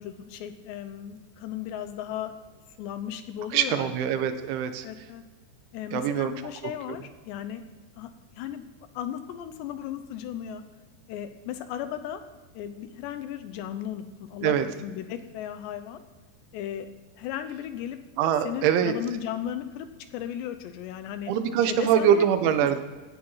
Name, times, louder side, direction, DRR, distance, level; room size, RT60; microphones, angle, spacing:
voice 1, 0.0-2.4 2.8-4.3 4.8-5.2 5.7-7.6 8.0-8.1 8.4-8.6 8.9-10.6 11.1-12.2 12.5-16.0 16.5-16.9 17.2-18.0 18.4-21.3 21.7-22.3, left 10 dB, 75° left, 9 dB, 2.9 m, -36 dB
voice 2, 3.5-4.9 5.9-6.3 14.4-14.7 18.2-18.9 21.3-22.8, right 9 dB, 80° right, 9 dB, 3.4 m, -23 dB
18.0 x 12.5 x 5.7 m, 1.3 s
omnidirectional pair, 5.4 m